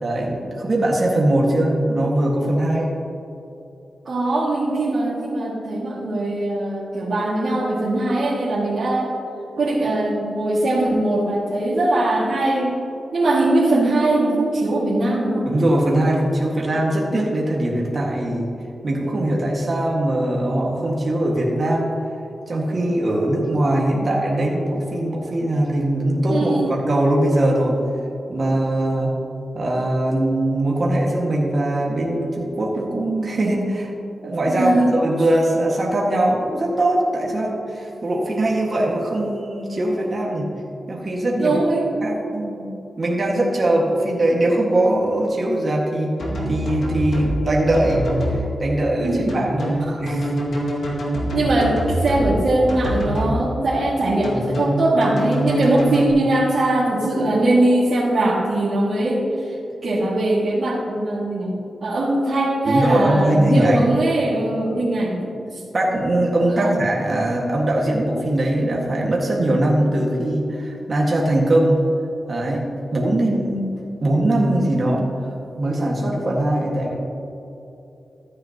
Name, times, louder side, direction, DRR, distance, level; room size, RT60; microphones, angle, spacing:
voice 1, 0.0-2.9 15.5-18.5 18.8-22.0 22.5-27.8 28.3-29.2 29.5-33.9 34.2-40.5 40.9-41.6 42.0-42.7 43.0-46.1 46.5-50.3 62.7-63.9 65.7-71.8 72.3-72.6 72.9-73.7 74.0-75.1 75.6-76.9, right 1 dB, 40° right, -3 dB, 1.8 m, -21 dB
voice 2, 4.0-9.1 9.6-12.8 13.1-15.5 23.9-24.1 26.3-26.7 34.5-35.0 41.4-41.9 49.0-49.4 49.8-50.0 50.8-50.9 51.3-59.5 59.8-61.6 61.8-65.6 66.6-66.9, right 2 dB, 60° right, -10 dB, 2.2 m, -21 dB
sound 1, 46.2-47.3 47.7-48.4 49.3-52.3 52.7-53.3 54.2-56.1, equal, 85° left, 2.1 m, -24 dB
14.0 x 9.4 x 2.9 m, 2.8 s
wide cardioid pair, 105°, 0 cm